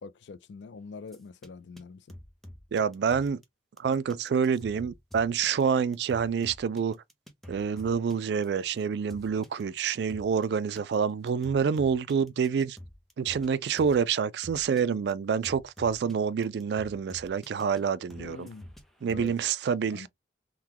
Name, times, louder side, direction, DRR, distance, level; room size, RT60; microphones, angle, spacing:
voice 1, 0.0-2.2 18.2-18.7 19.0-19.3 19.9-20.1, left 4 dB, 75° left, 0.4 m, -44 dB
sound 1, 1.1-1.5 1.8-1.9 2.1-3.4 3.8-10.4 10.8-10.9 11.3-13.5 13.8-14.0 14.4-14.8 15.1-15.2 15.4-16.1 16.4-17.8 18.1-19.3, left 1 dB, ahead, 0.6 m, -48 dB
voice 2, 2.7-3.4 3.8-7.0 7.5-12.8 13.2-18.5 19.0-20.1, right 6 dB, 65° right, 0.3 m, -27 dB
3.7 x 2.2 x 2.9 m
head